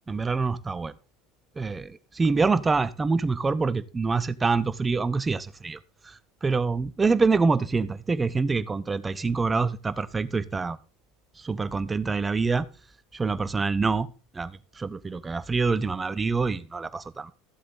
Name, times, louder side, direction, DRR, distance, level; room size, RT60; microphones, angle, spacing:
voice 1, 0.1-0.9 1.6-5.8 6.0-10.8 11.4-12.7 13.1-14.1 14.3-17.3, right 4 dB, 20° right, 0.9 m, -26 dB
14.0 x 7.8 x 3.9 m
hypercardioid pair, 85°, 0 cm